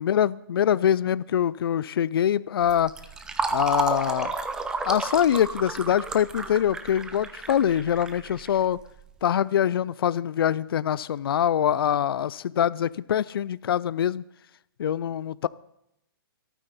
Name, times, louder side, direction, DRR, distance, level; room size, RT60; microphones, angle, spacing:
voice 1, 0.0-2.9 3.5-4.4 4.9-8.8 9.2-14.2 14.8-15.5, left 10 dB, 70° left, 20 dB, 0.4 m, -24 dB
Fill (with liquid), 2.6-9.0, right 3 dB, 5° right, 0.5 m, -32 dB
24.5 x 9.2 x 4.1 m, 0.79 s
hypercardioid pair, 165°, 13 cm